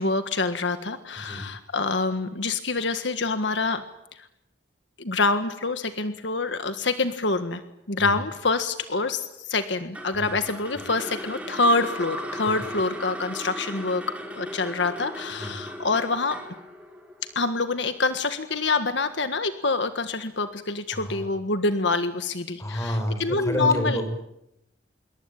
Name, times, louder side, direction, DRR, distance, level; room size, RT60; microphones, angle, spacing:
voice 1, 0.0-3.8 5.0-7.6 7.9-14.0 14.4-16.4 17.3-24.0, left 3 dB, 70° left, 9 dB, 1.6 m, -26 dB
sound 1, 9.9-18.1, equal, 5° right, 5.1 m, -37 dB
voice 2, 20.9-21.3 22.6-24.1, equal, 15° left, 6 dB, 6.0 m, -29 dB
27.0 x 23.0 x 9.0 m, 0.83 s
head